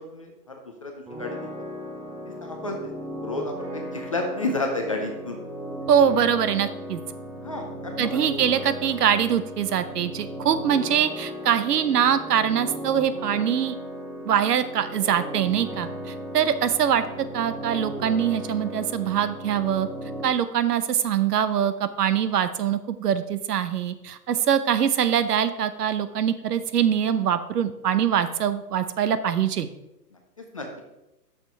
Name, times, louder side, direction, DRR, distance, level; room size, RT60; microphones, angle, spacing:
voice 1, 0.0-1.5 2.3-2.9 3.2-5.4 7.4-8.2 15.8-15.9 24.3-24.4 30.1-30.8, left 2 dB, 25° left, 2 dB, 0.4 m, -32 dB
sound 1, 1.1-20.3, equal, 15° right, 1.0 m, -36 dB
voice 2, 5.9-7.0 8.0-13.8 14.2-17.0 17.3-19.9 20.2-29.7, right 9 dB, 70° right, 12 dB, 0.8 m, -23 dB
6.5 x 6.2 x 4.6 m, 0.94 s
hypercardioid pair, 135°, 49 cm